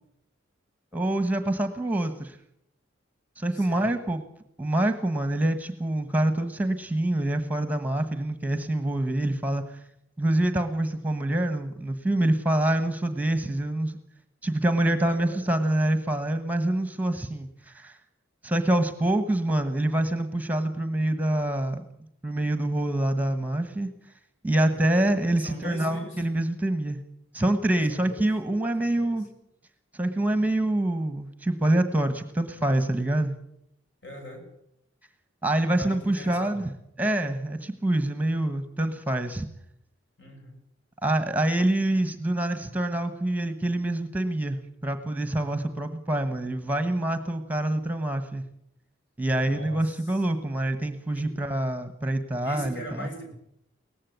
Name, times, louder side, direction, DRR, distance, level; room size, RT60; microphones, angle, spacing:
voice 1, 0.9-2.4 3.4-4.2 4.6-9.8 10.2-14.0 14.4-18.0 18.4-21.8 22.2-23.9 24.4-27.0 27.3-29.3 29.9-33.3 35.4-36.6 37.0-39.5 41.0-48.4 49.2-53.1, right 1 dB, 10° right, 9 dB, 1.3 m, -26 dB
voice 2, 3.5-3.9 15.0-15.4 24.7-25.1 25.4-26.2 27.9-28.3 28.8-29.3 34.0-34.5 35.6-36.6 40.2-40.6 49.4-50.2 51.1-51.3 52.4-53.3, equal, 60° left, 3 dB, 7.1 m, -41 dB
18.5 x 15.5 x 9.4 m, 0.75 s
head